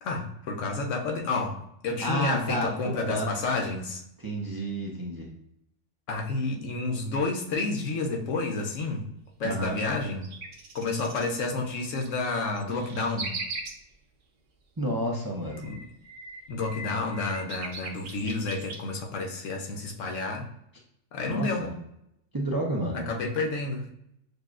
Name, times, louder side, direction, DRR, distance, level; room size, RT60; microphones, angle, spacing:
voice 1, 0.0-4.0 6.1-9.1 9.4-10.3 10.7-13.4 15.6-15.8 16.5-20.5 21.1-21.7 22.9-23.9, left 3 dB, 80° left, 2 dB, 1.1 m, -30 dB
voice 2, 2.0-3.3 4.2-5.3 9.4-9.8 14.8-15.6 21.3-21.7 22.3-23.1, right 1 dB, 25° right, -2 dB, 0.5 m, -30 dB
sound 1, 10.0-11.3 11.8-13.7 15.2-18.8, right 3 dB, 80° right, 1.1 m, -39 dB
6.5 x 2.4 x 2.4 m, 0.77 s
omnidirectional pair, 1.3 m